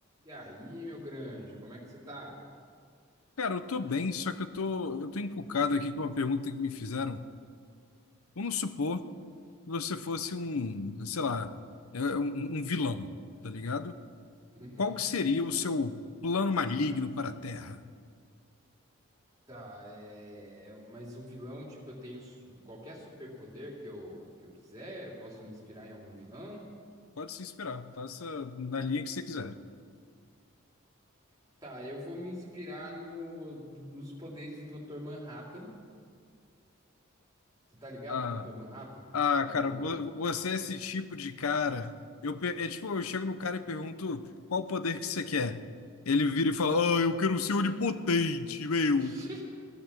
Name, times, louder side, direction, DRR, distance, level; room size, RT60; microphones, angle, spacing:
voice 1, 0.2-2.4 14.5-14.9 19.5-26.7 31.6-35.7 37.8-39.1 39.4-40.0 48.9-49.4, equal, 15° right, -4 dB, 3.4 m, -44 dB
voice 2, 3.4-7.2 8.4-9.0 9.7-11.5 11.9-13.1 13.4-14.0 14.8-17.8 27.2-29.6 38.1-38.5 39.1-41.9 42.2-45.6 46.1-49.2, left 4 dB, 90° left, 11 dB, 0.8 m, -31 dB
16.5 x 10.5 x 7.5 m, 2.1 s
head